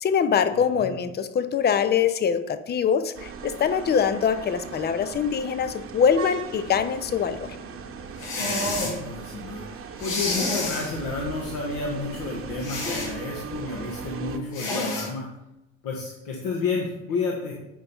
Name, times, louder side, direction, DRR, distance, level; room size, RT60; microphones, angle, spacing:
voice 1, 0.0-7.6, left 7 dB, 25° left, 11 dB, 0.7 m, -23 dB
voice 2, 0.5-1.0 8.3-15.3 15.8-17.5, left 4 dB, 55° left, -1 dB, 1.4 m, -31 dB
sound 1, 3.1-14.4, right 6 dB, 35° right, 1.2 m, -38 dB
sound 2, 8.2-9.0 10.0-10.9 12.6-13.1 14.5-15.1, left 2 dB, 75° left, 2.3 m, -28 dB
8.5 x 5.4 x 4.3 m, 0.94 s
hypercardioid pair, 60°, 40 cm